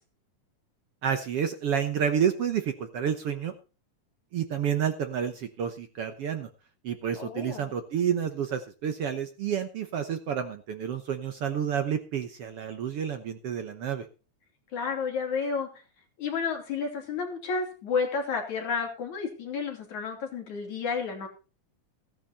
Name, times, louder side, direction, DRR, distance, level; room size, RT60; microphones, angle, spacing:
voice 1, 1.0-3.5 4.3-6.5 6.8-14.0, right 8 dB, 60° right, 8 dB, 1.7 m, -29 dB
voice 2, 7.2-7.7 14.7-15.7 16.2-21.3, left 5 dB, 70° left, 2 dB, 4.4 m, -31 dB
16.5 x 10.5 x 4.2 m, 0.34 s
omnidirectional pair, 3.6 m